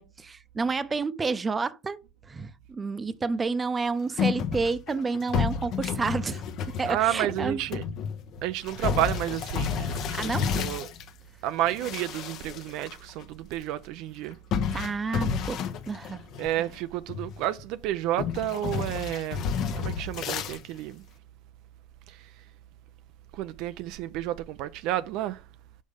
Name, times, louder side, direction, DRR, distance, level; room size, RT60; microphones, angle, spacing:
voice 1, 0.0-2.0 2.3-6.4 6.8-7.6 10.1-10.5 14.7-15.6 15.9-16.2, right 4 dB, 20° right, 0.7 m, -30 dB
sound 1, 4.2-11.1 11.6-12.9 13.2-13.3 14.5-16.8 17.1-17.6 18.2-20.6, left 6 dB, 50° left, 0.9 m, -31 dB
voice 2, 6.8-7.8 8.4-10.9 11.4-14.4 14.7-14.8 16.4-21.0 22.1-22.3 23.3-25.4, right 13 dB, 60° right, 0.4 m, -31 dB
5.3 x 5.2 x 5.1 m
supercardioid pair, 100°, 0 cm